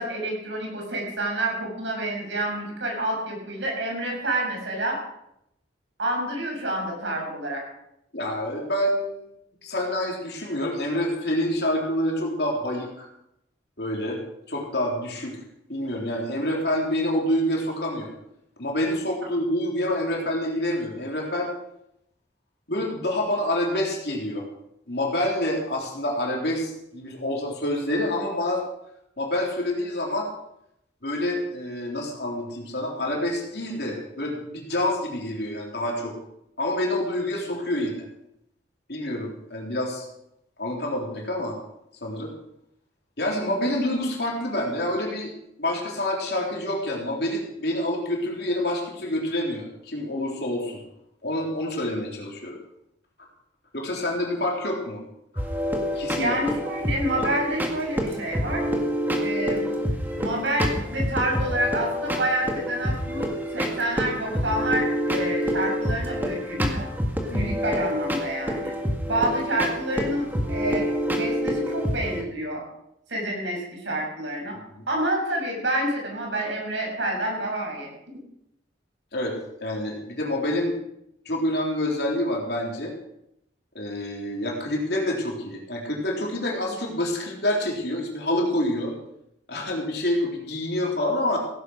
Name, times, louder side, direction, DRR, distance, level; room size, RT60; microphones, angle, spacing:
voice 1, 0.0-5.0 6.0-7.6 56.2-58.7 59.2-59.7 60.2-63.2 63.5-66.9 67.3-68.7 69.1-72.6 73.1-74.6 74.9-77.9, right 1 dB, 75° right, 0 dB, 6.4 m, -28 dB
voice 2, 8.1-9.4 9.6-13.1 13.8-14.2 14.5-15.4 15.7-18.1 18.6-21.5 22.7-24.4 24.9-28.6 29.2-30.3 31.0-36.1 36.6-38.0 38.9-40.1 40.6-41.6 42.0-42.3 43.2-45.3 45.6-50.8 51.2-52.6 53.7-55.0 55.9-56.4 67.3-67.5 74.8-74.9 79.1-80.8 81.3-83.0 83.8-88.9 89.5-91.4, left 1 dB, 60° left, -1 dB, 3.7 m, -27 dB
sound 1, 55.4-72.2, equal, 10° right, 1.8 m, -27 dB
16.5 x 10.5 x 6.4 m, 0.79 s
head